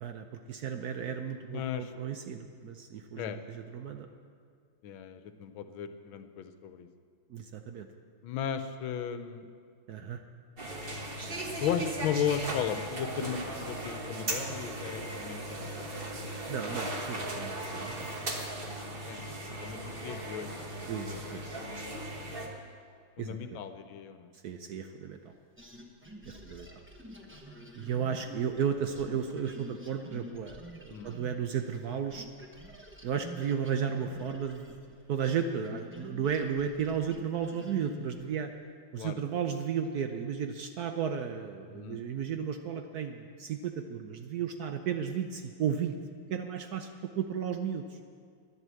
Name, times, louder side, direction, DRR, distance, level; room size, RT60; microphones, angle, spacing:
voice 1, 0.0-4.1 7.3-7.9 9.9-10.2 16.5-18.1 19.3-19.6 20.9-21.5 23.2-23.6 24.4-25.3 26.2-26.7 27.8-32.3 33.0-34.8 35.1-38.5 38.9-45.9 46.3-48.0, right 7 dB, 65° right, 6 dB, 1.0 m, -34 dB
voice 2, 1.5-1.9 3.1-3.4 4.8-6.9 8.2-9.5 11.6-15.9 19.0-19.3 19.6-20.5 20.8-21.2 21.5-21.9 23.2-24.3 27.2-27.4 30.9-31.1 39.0-39.2 41.7-42.0, left 8 dB, 85° left, 9 dB, 1.6 m, -36 dB
sound 1, 10.6-22.5, right 1 dB, 35° right, 1.3 m, -37 dB
sound 2, 25.6-38.3, equal, 10° right, 0.6 m, -48 dB
11.0 x 10.0 x 7.6 m, 2.1 s
omnidirectional pair, 2.2 m